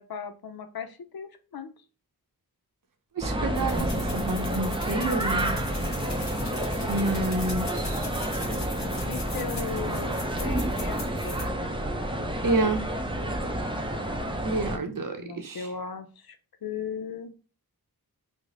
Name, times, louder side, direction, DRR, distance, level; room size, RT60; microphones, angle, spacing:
voice 1, 0.0-1.7 8.8-11.4 15.2-17.3, left 6 dB, 65° left, 9 dB, 0.5 m, -38 dB
voice 2, 3.1-5.6 6.9-8.1 12.4-12.8 14.4-15.7, right 2 dB, 55° right, 4 dB, 0.7 m, -29 dB
sound 1, 3.2-14.8, right 1 dB, 15° right, 0.5 m, -29 dB
sound 2, 3.5-11.4, left 2 dB, 45° left, 1.0 m, -41 dB
3.2 x 2.1 x 3.7 m, 0.36 s
wide cardioid pair, 50°, 39 cm